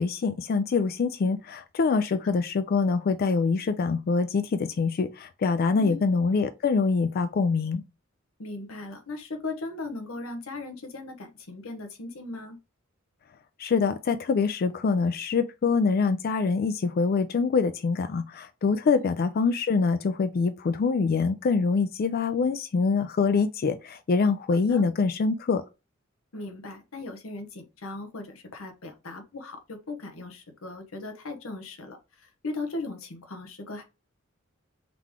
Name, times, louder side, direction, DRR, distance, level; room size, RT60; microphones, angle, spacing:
voice 1, 0.0-7.8 13.6-25.6, left 4 dB, 45° left, 0.4 m, -25 dB
voice 2, 8.4-12.6 18.9-19.1 24.5-24.9 26.3-33.8, left 2 dB, 90° left, 1.0 m, -38 dB
3.8 x 3.1 x 3.5 m
head